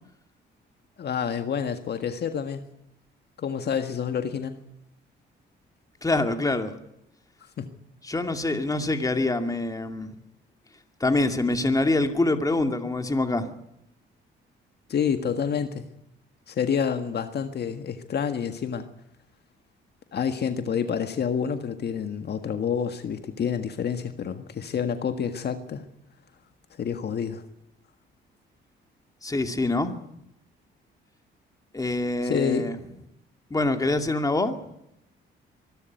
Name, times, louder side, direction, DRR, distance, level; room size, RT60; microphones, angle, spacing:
voice 1, 1.0-2.7 3.4-4.6 7.6-7.7 14.9-15.8 16.5-18.9 20.1-25.8 26.8-27.4 32.2-32.7, left 7 dB, 55° left, 8 dB, 1.7 m, -28 dB
voice 2, 6.0-6.7 8.0-10.1 11.0-13.5 29.2-29.9 31.7-32.8 33.5-34.6, left 2 dB, 15° left, 6 dB, 2.4 m, -25 dB
24.0 x 12.5 x 9.3 m, 0.81 s
cardioid pair, 90°, 20 cm